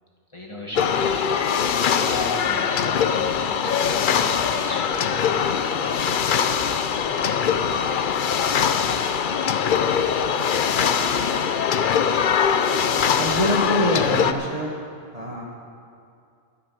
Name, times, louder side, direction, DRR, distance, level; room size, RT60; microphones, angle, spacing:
voice 1, 0.3-5.7, equal, 20° left, -3 dB, 2.0 m, -38 dB
sound 1, 0.8-14.3, left 7 dB, 55° left, 0.5 m, -22 dB
voice 2, 13.2-14.7 15.1-15.4, equal, 30° right, -3 dB, 1.3 m, -24 dB
13.0 x 12.0 x 6.0 m, 2.4 s
omnidirectional pair, 1.4 m